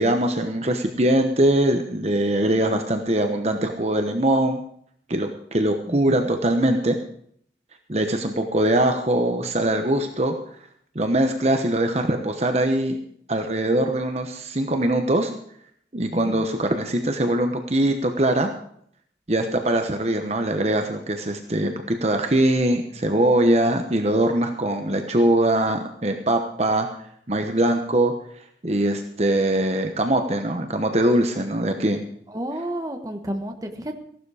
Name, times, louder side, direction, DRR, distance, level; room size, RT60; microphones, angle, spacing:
voice 1, 0.0-4.6 5.1-7.0 7.9-10.3 10.9-13.0 13.3-15.3 15.9-18.5 19.3-26.9 27.3-32.0, right 1 dB, 35° right, 5 dB, 1.1 m, -22 dB
voice 2, 5.9-6.3 16.1-16.4 32.3-33.9, right 1 dB, 20° right, 5 dB, 1.3 m, -31 dB
15.5 x 12.0 x 4.9 m, 0.64 s
head